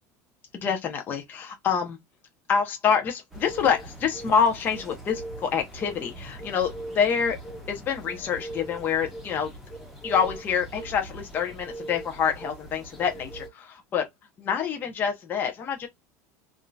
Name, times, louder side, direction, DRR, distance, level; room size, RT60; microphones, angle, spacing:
voice 1, 0.6-2.0 2.5-7.4 7.7-9.5 10.0-14.1 14.4-15.9, left 7 dB, 25° left, 0.8 m, -26 dB
sound 1, 3.3-13.5, right 1 dB, ahead, 1.0 m, -41 dB
3.6 x 2.6 x 2.3 m
cardioid pair, 160°, 8 cm